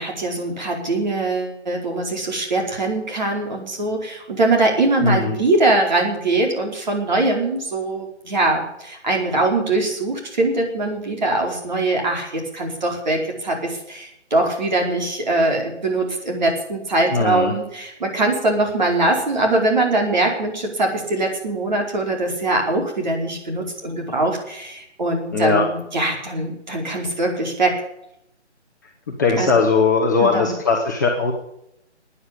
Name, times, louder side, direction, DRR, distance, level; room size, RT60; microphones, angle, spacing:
voice 1, 0.0-27.7 29.4-29.5 30.2-30.5, right 2 dB, 40° right, 1 dB, 4.8 m, -22 dB
voice 2, 5.0-5.4 17.1-17.5 25.3-25.6 29.2-31.3, left 4 dB, 15° left, -2 dB, 1.3 m, -19 dB
15.5 x 10.0 x 8.8 m, 0.79 s
hypercardioid pair, 175°, 35 cm